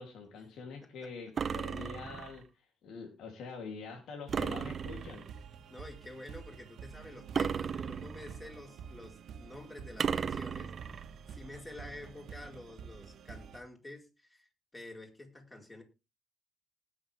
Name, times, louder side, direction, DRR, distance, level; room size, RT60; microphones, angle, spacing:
voice 1, 0.0-5.3, left 5 dB, 80° left, 2 dB, 3.5 m, -45 dB
sound 1, 1.4-2.4 4.3-5.4 7.3-8.5 10.0-11.1, right 6 dB, 50° right, 1.0 m, -35 dB
sound 2, 4.3-13.6, right 7 dB, 70° right, 1.7 m, -49 dB
voice 2, 5.7-11.0 11.3-15.8, left 2 dB, 20° left, 2 dB, 4.8 m, -49 dB
19.0 x 7.4 x 3.7 m, 0.28 s
cardioid pair, 90°, 0 cm